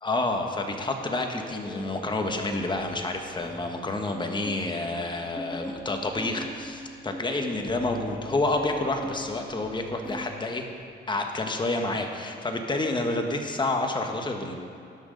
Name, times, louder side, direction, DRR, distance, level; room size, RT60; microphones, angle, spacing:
voice 1, 0.0-10.6 11.1-14.6, left 2 dB, 25° left, 3 dB, 1.3 m, -29 dB
sound 1, 1.3-3.7 4.1-4.2 4.4-10.4 10.8-11.2, left 1 dB, 5° left, 0.9 m, -41 dB
18.5 x 6.3 x 5.2 m, 2.5 s
cardioid pair, 90°, 20 cm